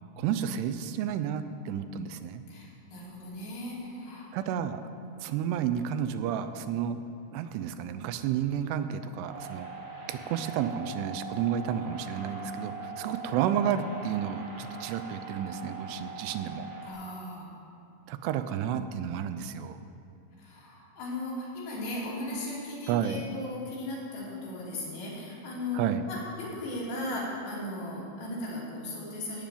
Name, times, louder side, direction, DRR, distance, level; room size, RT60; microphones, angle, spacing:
voice 1, 0.2-2.4 4.3-4.8 5.2-7.0 7.3-9.7 10.1-16.7 18.1-19.8 22.9-23.2 25.7-26.0, right 9 dB, 80° right, 10 dB, 2.6 m, -31 dB
voice 2, 2.5-4.3 16.8-17.5 20.4-29.5, left 1 dB, 70° left, -7 dB, 5.1 m, -37 dB
sound 1, 9.2-16.9, right 4 dB, 35° right, 4.1 m, -42 dB
14.5 x 5.3 x 9.0 m, 2.7 s
omnidirectional pair, 5.0 m